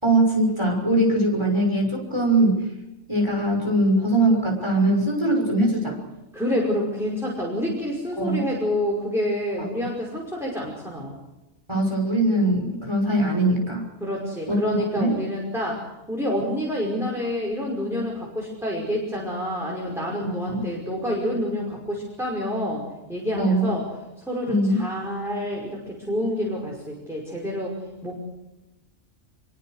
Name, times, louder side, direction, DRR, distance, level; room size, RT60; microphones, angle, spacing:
voice 1, 0.0-2.6 3.1-6.0 8.2-8.5 11.7-13.8 14.5-14.6 14.9-15.1 20.2-20.6 23.4-23.7 24.5-24.8, right 1 dB, 20° right, 0 dB, 6.2 m, -21 dB
voice 2, 6.3-11.2 14.0-15.8 16.1-22.8 23.1-23.8 24.2-27.8 28.0-28.2, equal, ahead, -3 dB, 5.6 m, -28 dB
26.5 x 23.5 x 6.6 m, 0.96 s
omnidirectional pair, 1.3 m